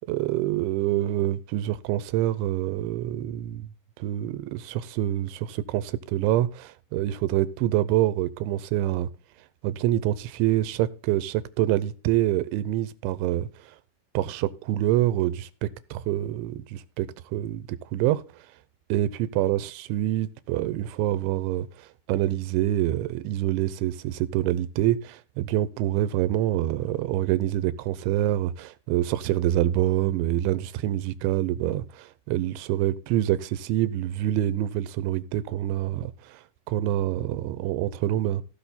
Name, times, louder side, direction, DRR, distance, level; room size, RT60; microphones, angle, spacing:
voice 1, 0.1-3.7 4.0-9.1 9.6-13.5 14.1-17.6 17.9-18.2 18.9-21.7 22.1-36.4 36.7-38.4, right 13 dB, 90° right, 3.2 m, -26 dB
16.5 x 6.2 x 4.1 m
omnidirectional pair, 5.2 m